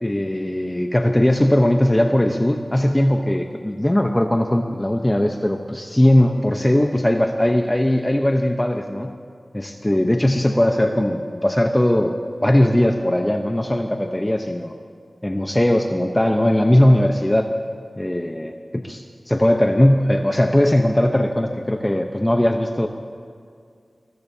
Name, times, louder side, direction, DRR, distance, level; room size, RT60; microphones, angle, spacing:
voice 1, 0.0-9.1 9.5-12.1 12.4-14.7 15.2-17.5 18.0-18.5 18.9-19.0 19.3-22.9, left 1 dB, 15° left, 4 dB, 0.9 m, -19 dB
22.0 x 21.0 x 2.8 m, 2.3 s
wide cardioid pair, 55°, 0 cm